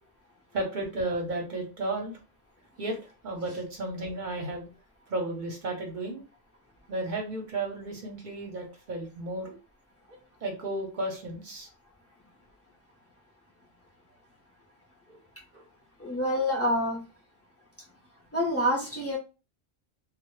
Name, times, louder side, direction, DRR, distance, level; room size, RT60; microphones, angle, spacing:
voice 1, 0.5-2.2 2.8-3.0 3.2-4.7 5.1-6.2 6.9-9.6 10.1-11.7 15.1-15.2 15.5-15.6, right 2 dB, 55° right, 1 dB, 0.6 m, -33 dB
voice 2, 16.0-17.0 18.3-19.2, equal, 25° left, -4 dB, 0.3 m, -27 dB
2.0 x 2.0 x 3.0 m, 0.32 s
omnidirectional pair, 1.2 m